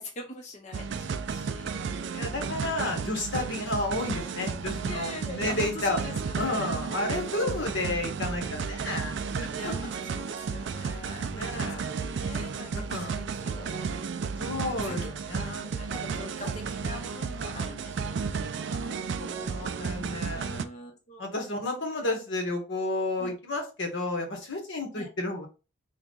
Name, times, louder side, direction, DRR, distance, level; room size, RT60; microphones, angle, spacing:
voice 1, 0.0-2.2 3.5-3.8 4.9-7.5 9.5-14.3 14.8-15.0 15.6-18.9 19.4-20.0 20.3-21.4 23.2-23.3 24.9-25.1, left 1 dB, 35° left, 1 dB, 0.8 m, -43 dB
sound 1, 0.7-20.6, right 5 dB, 55° right, 0.3 m, -33 dB
voice 2, 2.1-6.0 6.4-9.8 10.8-10.9 11.3-11.9 12.7-13.2 14.4-15.7 18.7-20.5 21.2-25.5, left 2 dB, 65° left, 3 dB, 1.1 m, -32 dB
3.7 x 2.3 x 3.7 m, 0.31 s
head